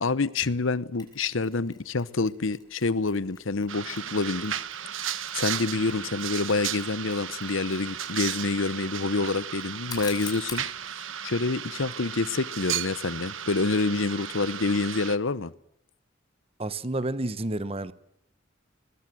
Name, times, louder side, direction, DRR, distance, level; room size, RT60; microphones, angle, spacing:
voice 1, 0.0-4.5 5.3-10.6 11.2-15.5, left 3 dB, 85° left, 0.9 m, -27 dB
Mechanisms, 1.0-10.7, left 5 dB, 20° left, 6.1 m, -47 dB
sound 1, 3.7-15.2, right 10 dB, 85° right, 1.1 m, -35 dB
voice 2, 16.6-17.9, right 2 dB, 30° right, 1.0 m, -30 dB
22.5 x 21.0 x 7.8 m
head